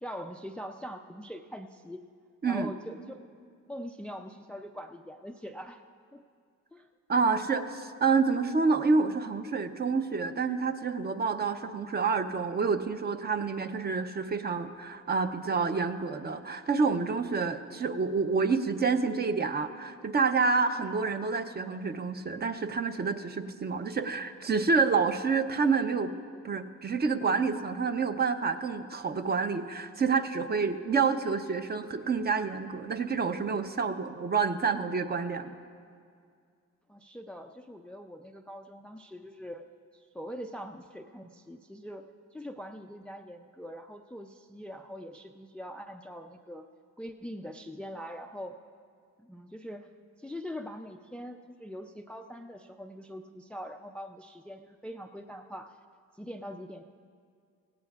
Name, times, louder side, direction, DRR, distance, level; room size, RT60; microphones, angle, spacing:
voice 1, 0.0-2.0 2.4-3.2 3.7-5.8 6.1-6.2 6.7-6.9 36.9-39.7 39.9-42.0 42.3-46.7 47.0-48.6 49.2-49.9 50.2-55.8 56.1-56.8, equal, 5° left, 6 dB, 0.4 m, -42 dB
voice 2, 7.1-26.1 26.4-35.6, right 4 dB, 35° right, 8 dB, 0.7 m, -28 dB
17.5 x 16.0 x 2.4 m, 2.2 s
cardioid pair, 90°, 30 cm